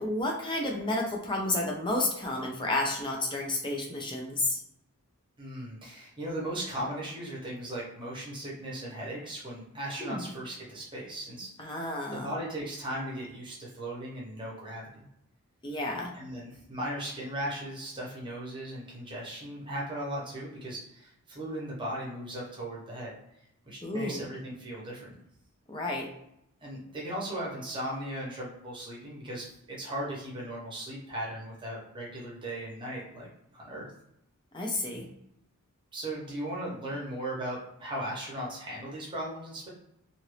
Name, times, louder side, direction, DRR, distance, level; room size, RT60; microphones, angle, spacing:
voice 1, 0.0-4.6 10.0-10.3 11.6-12.3 15.6-16.1 23.8-24.2 25.7-26.1 34.5-35.1, left 2 dB, 20° left, 0 dB, 0.6 m, -31 dB
voice 2, 5.4-15.0 16.1-23.1 23.7-25.2 26.6-33.3 33.5-33.9 35.9-39.7, right 1 dB, 20° right, -4 dB, 1.0 m, -37 dB
2.8 x 2.6 x 3.2 m, 0.78 s
head